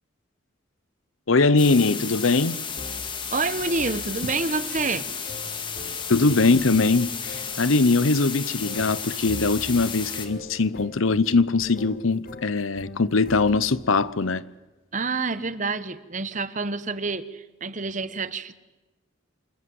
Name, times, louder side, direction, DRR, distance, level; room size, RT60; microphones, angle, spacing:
voice 1, 1.3-2.6 6.1-14.4, left 3 dB, 80° left, 0.9 m, -21 dB
sound 1, 1.6-10.3, left 6 dB, 25° left, 2.2 m, -33 dB
sound 2, 2.8-13.9, left 2 dB, 45° left, 1.8 m, -42 dB
voice 2, 3.3-5.1 14.9-18.5, right 4 dB, 40° right, 1.1 m, -28 dB
28.5 x 26.0 x 7.9 m
head